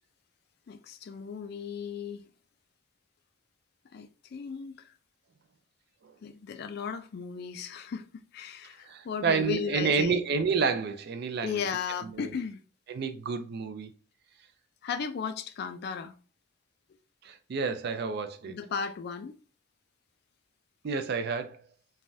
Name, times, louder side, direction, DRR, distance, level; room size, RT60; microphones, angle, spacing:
voice 1, 0.7-2.2 3.9-4.9 6.2-8.0 8.3-10.2 11.4-12.6 14.8-16.1 18.5-19.3, left 6 dB, 55° left, 0.3 m, -35 dB
voice 2, 8.9-11.6 12.0-12.4 12.9-13.9 17.2-18.6 20.8-21.6, right 5 dB, 55° right, 0.4 m, -29 dB
3.2 x 2.2 x 2.6 m
head